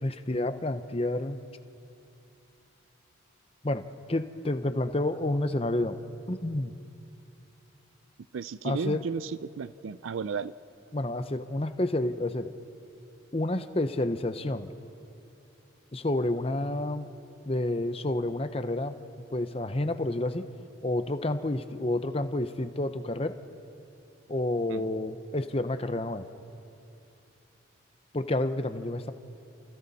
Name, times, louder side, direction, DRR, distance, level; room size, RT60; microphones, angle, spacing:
voice 1, 0.0-1.4 3.6-3.8 4.1-6.0 6.3-6.7 8.6-9.0 10.9-12.5 13.3-14.7 15.9-17.1 17.5-19.0 19.3-20.5 20.8-23.4 24.3-26.3 28.1-29.1, left 1 dB, 30° left, 10 dB, 0.8 m, -29 dB
voice 2, 8.3-10.5 24.7-25.1, right 5 dB, 75° right, 16 dB, 0.4 m, -34 dB
29.0 x 28.0 x 4.2 m, 2.8 s
head